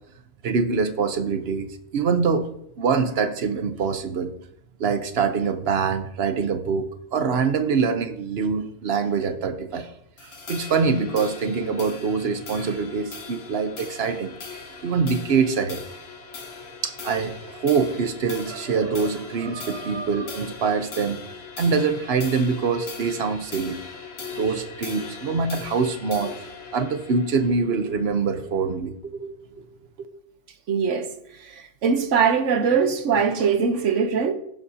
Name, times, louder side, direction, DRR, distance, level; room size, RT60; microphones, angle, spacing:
voice 1, 0.4-2.5 2.8-4.3 4.8-9.9 10.2-15.8 16.8-21.2 21.6-23.8 24.3-26.4 26.7-29.7, right 5 dB, 60° right, 1.1 m, -24 dB
sound 1, 10.2-28.8, left 5 dB, 60° left, 1.4 m, -40 dB
voice 2, 30.7-31.1 31.3-34.3, right 6 dB, 85° right, 1.3 m, -22 dB
15.5 x 7.2 x 2.8 m
omnidirectional pair, 1.2 m